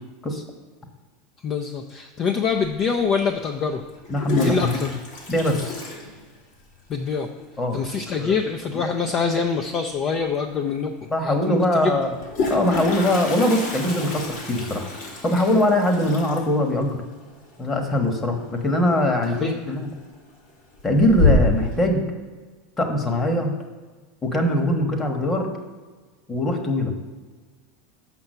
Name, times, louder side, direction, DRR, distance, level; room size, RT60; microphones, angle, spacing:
voice 1, 1.4-3.8 4.4-4.9 6.9-7.3 7.7-10.9 11.2-12.0 19.4-19.5, left 5 dB, 40° left, 4 dB, 0.6 m, -25 dB
Toilet flush, 2.6-2.7 3.9-6.8 7.0-7.1 7.4-7.5 7.8-8.2 9.9-10.0 10.3-10.4 12.0-18.7 18.9-19.4 19.8-20.3 20.7-21.7, left 2 dB, 70° left, 2.5 m, -27 dB
voice 2, 4.1-4.9 5.3-5.8 7.6-7.8 8.2-8.4 8.7-8.9 11.1-12.1 12.5-14.9 15.2-17.0 17.6-19.9 20.8-22.0 22.8-23.5 24.2-25.5 26.3-26.9, left 1 dB, 20° left, 4 dB, 1.3 m, -22 dB
5.9 x 5.7 x 6.6 m, 1.4 s
supercardioid pair, 120°, 0 cm